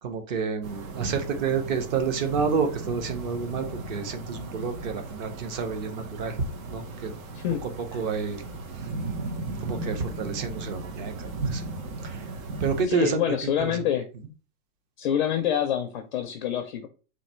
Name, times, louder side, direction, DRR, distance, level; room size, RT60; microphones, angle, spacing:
voice 1, 0.0-6.4 6.7-7.1 7.6-8.4 8.7-8.9 9.6-11.6 12.0-12.3 12.6-13.8, right 5 dB, 35° right, 0.7 m, -29 dB
sound 1, 0.6-12.8, right 3 dB, 75° right, 1.3 m, -36 dB
voice 2, 12.9-14.1 15.0-16.9, left 9 dB, 40° left, 0.4 m, -26 dB
3.9 x 2.6 x 4.3 m
supercardioid pair, 165°, 42 cm